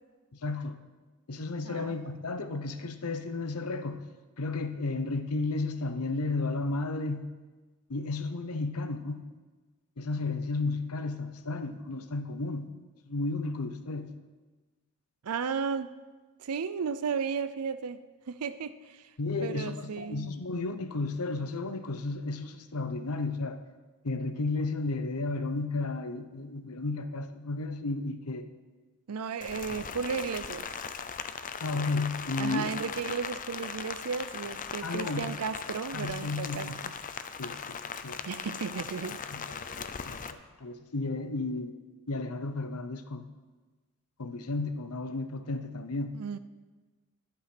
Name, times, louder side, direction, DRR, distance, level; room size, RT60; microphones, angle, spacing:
voice 1, 0.4-0.8 1.3-4.0 4.4-7.3 7.9-9.2 10.0-12.7 13.1-14.1 19.2-23.6 24.0-28.5 31.6-32.7 34.8-35.3 35.9-36.8 37.4-38.2 39.3-39.4 39.8-41.7 42.1-43.3 44.2-46.2, left 3 dB, 80° left, 0.9 m, -33 dB
voice 2, 1.6-2.0 15.2-15.9 16.4-18.0 18.3-19.1 19.4-20.3 29.1-30.7 32.4-36.9 38.2-39.2 46.1-46.4, right 6 dB, 80° right, 0.5 m, -34 dB
Rain, 29.4-40.3, left 6 dB, 40° left, 0.6 m, -39 dB
11.5 x 11.5 x 6.0 m
head